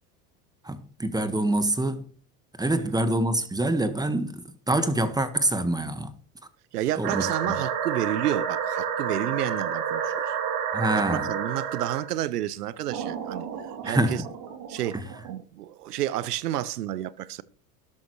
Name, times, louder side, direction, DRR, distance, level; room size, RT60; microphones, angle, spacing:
voice 1, 0.6-2.1 2.6-6.1 7.0-7.5 10.7-11.3 13.8-14.2 14.9-15.0, right 1 dB, 10° right, 1.5 m, -26 dB
voice 2, 6.7-10.4 10.9-14.2 14.7-15.0 15.3-17.4, right 13 dB, 85° right, 0.9 m, -30 dB
sound 1, 7.0-12.1 12.9-15.3, right 7 dB, 50° right, 3.0 m, -30 dB
13.0 x 11.5 x 3.1 m
hypercardioid pair, 95°, 46 cm